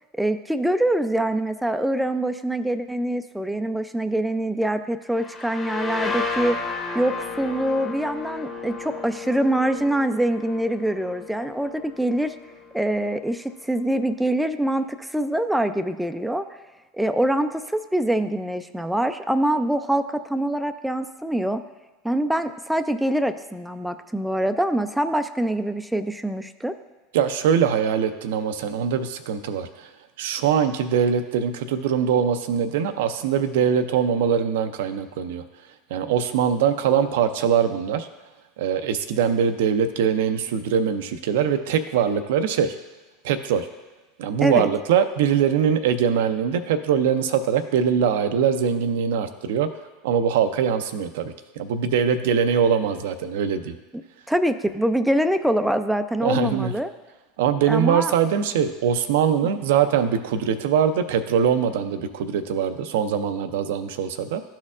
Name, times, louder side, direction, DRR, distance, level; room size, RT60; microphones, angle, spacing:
voice 1, 0.2-6.6 6.9-12.3 12.7-16.5 16.9-21.6 22.0-26.7 44.4-44.7 54.3-56.9 57.7-58.1, right 1 dB, 5° right, 9 dB, 0.3 m, -24 dB
sound 1, 5.1-12.7, left 4 dB, 25° left, 1.3 m, -33 dB
voice 2, 27.1-29.9 30.2-35.4 35.9-38.1 38.6-42.7 43.2-43.7 44.2-49.7 50.0-53.8 56.2-56.7 57.4-64.4, right 8 dB, 75° right, 9 dB, 0.4 m, -22 dB
12.0 x 4.3 x 2.4 m, 1.2 s
hypercardioid pair, 90°, 0 cm